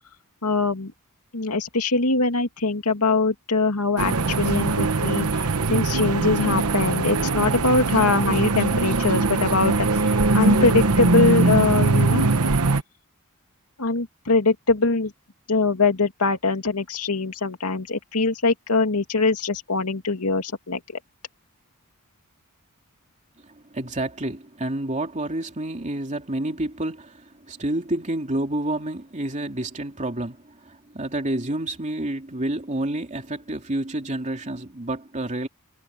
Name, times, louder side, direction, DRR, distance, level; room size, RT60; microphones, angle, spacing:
voice 1, 0.4-0.9 1.3-12.3 13.8-15.1 15.5-20.8, left 3 dB, 90° left, 2.4 m, -23 dB
sound 1, 4.0-12.8, right 3 dB, 75° right, 1.1 m, -21 dB
voice 2, 23.5-35.5, right 1 dB, 35° right, 3.1 m, -29 dB
head